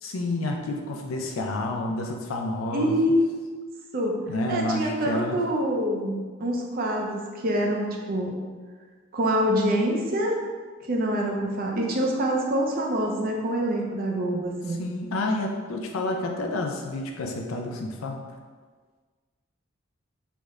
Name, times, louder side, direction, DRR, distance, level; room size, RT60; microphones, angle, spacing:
voice 1, 0.0-3.0 4.3-5.4 14.8-18.2, left 2 dB, 85° left, 2 dB, 0.4 m, -29 dB
voice 2, 2.7-3.5 3.9-4.2 4.5-8.3 9.1-10.4 10.9-14.8, equal, 45° right, 0 dB, 0.5 m, -25 dB
3.4 x 2.1 x 3.5 m, 1.5 s
head